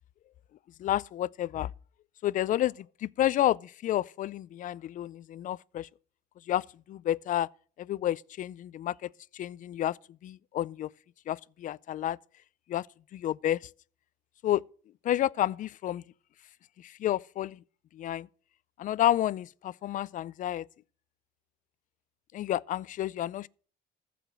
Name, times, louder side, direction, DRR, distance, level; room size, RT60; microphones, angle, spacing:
voice 1, 0.8-1.7 2.2-5.9 6.5-7.5 7.8-10.0 10.2-10.9 11.3-12.2 12.7-12.9 13.1-13.6 14.4-14.6 15.0-16.0 16.8-17.6 17.9-18.3 18.8-20.7 22.3-23.5, left 12 dB, 50° left, 0.4 m, -30 dB
14.5 x 5.1 x 7.8 m
cardioid pair, 110°, 17 cm